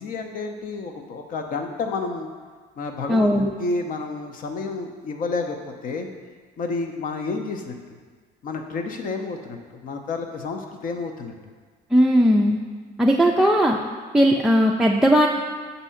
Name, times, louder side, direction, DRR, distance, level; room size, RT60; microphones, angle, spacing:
voice 1, 0.0-2.3 2.8-5.6 5.8-6.1 6.6-7.8 8.4-11.3, left 3 dB, 55° left, 4 dB, 0.7 m, -30 dB
voice 2, 3.1-3.5 11.9-12.6 13.0-13.8 14.1-15.3, equal, 5° right, -1 dB, 0.3 m, -17 dB
6.1 x 2.7 x 5.6 m, 1.5 s
cardioid pair, 110°, 17 cm